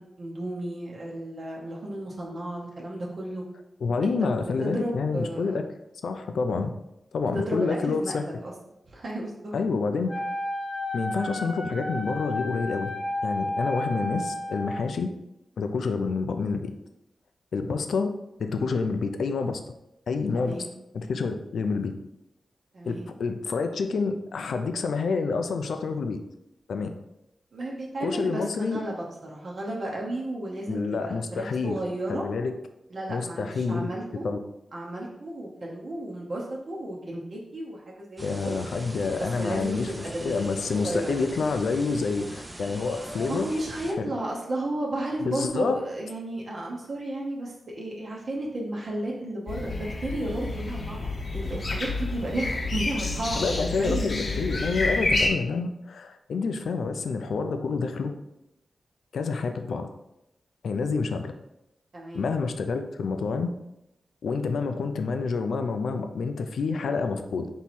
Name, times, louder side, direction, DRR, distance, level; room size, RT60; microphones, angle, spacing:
voice 1, 0.0-3.4 4.0-4.3 4.6-5.6 7.3-8.5 8.9-9.5 20.3-20.7 22.7-23.1 27.5-32.2 32.9-34.2 34.7-38.6 39.2-41.2 43.3-54.4 61.9-62.3, right 1 dB, 55° right, -3 dB, 0.8 m, -33 dB
voice 2, 3.8-5.6 6.0-6.7 7.1-8.2 9.5-10.3 10.9-12.9 13.2-15.1 15.6-16.7 17.5-18.1 18.4-19.6 20.1-20.6 20.9-21.9 22.9-26.2 26.7-26.9 28.0-28.8 30.7-31.8 32.1-32.5 33.1-33.9 34.2-34.4 38.2-43.5 44.0-44.1 45.2-45.8 53.4-58.1 59.1-59.9 60.6-61.3 62.1-63.5 64.2-67.5, left 4 dB, 90° left, 7 dB, 0.4 m, -28 dB
Wind instrument woodwind instrument, 10.1-14.9, left 1 dB, 20° left, 0.8 m, -32 dB
sound 1, 38.2-43.9, right 1 dB, 15° right, 0.5 m, -41 dB
sound 2, 49.5-55.3, left 2 dB, 50° left, 0.7 m, -29 dB
3.7 x 3.0 x 4.2 m, 0.87 s
wide cardioid pair, 110°, 0 cm